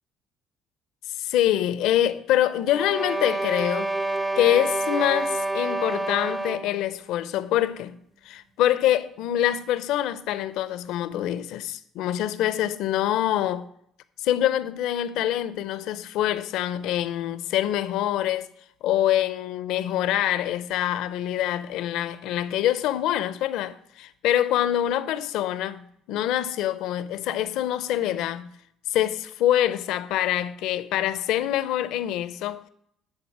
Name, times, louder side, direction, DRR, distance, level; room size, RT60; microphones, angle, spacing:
voice 1, 1.2-3.9 4.4-8.0 8.2-13.7 14.2-18.5 18.8-28.5 28.9-32.6, left 12 dB, 80° left, 0.5 m, -25 dB
sound 1, 2.7-6.8, right 2 dB, 15° right, 0.6 m, -28 dB
9.8 x 4.0 x 6.0 m
supercardioid pair, 85°, 0 cm